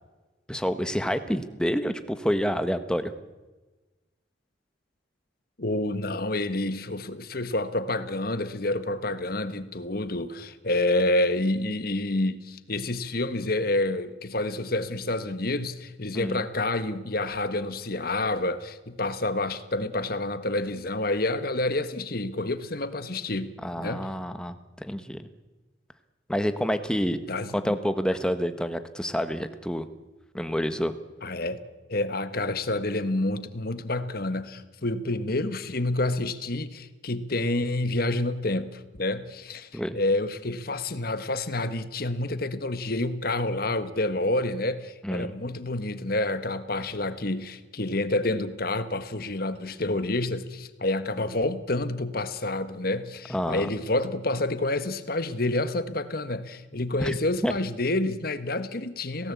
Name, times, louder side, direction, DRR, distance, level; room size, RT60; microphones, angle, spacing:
voice 1, 0.5-3.1 16.1-16.4 23.6-25.2 26.3-27.2 27.5-29.8 30.3-30.9 39.7-40.0 45.0-45.3 53.3-53.7 57.0-57.2 57.4-57.5, equal, 5° left, 9 dB, 1.3 m, -28 dB
voice 2, 5.6-24.1 27.3-27.8 31.2-31.6 31.9-59.3, left 2 dB, 50° left, 12 dB, 1.5 m, -28 dB
26.5 x 18.0 x 8.4 m, 1.2 s
head